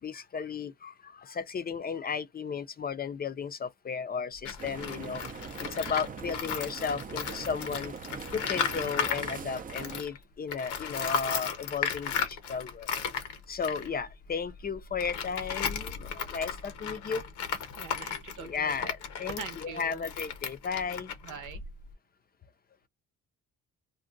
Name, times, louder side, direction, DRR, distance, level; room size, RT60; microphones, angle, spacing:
voice 1, 0.0-5.2 5.6-7.9 8.3-12.9 13.5-17.3 18.4-21.1, left 6 dB, 30° left, 0.4 m, -34 dB
Tools, 4.3-10.2 10.5-21.9, left 7 dB, 80° left, 0.8 m, -35 dB
sound 1, 4.6-10.0, right 7 dB, 30° right, 0.4 m, -42 dB
voice 2, 17.7-18.7 19.4-20.1 21.2-21.6, right 8 dB, 85° right, 0.7 m, -43 dB
2.6 x 2.2 x 3.7 m
cardioid pair, 90°, 30 cm